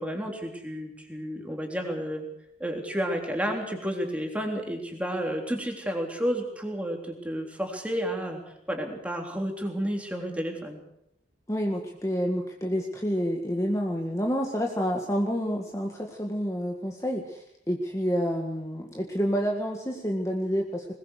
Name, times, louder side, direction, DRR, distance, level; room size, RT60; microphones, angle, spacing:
voice 1, 0.0-2.3 2.6-8.4 8.7-10.8, equal, 5° right, 2 dB, 3.6 m, -31 dB
voice 2, 11.5-20.9, equal, 15° left, 1 dB, 1.9 m, -29 dB
21.0 x 20.5 x 6.6 m, 0.79 s
head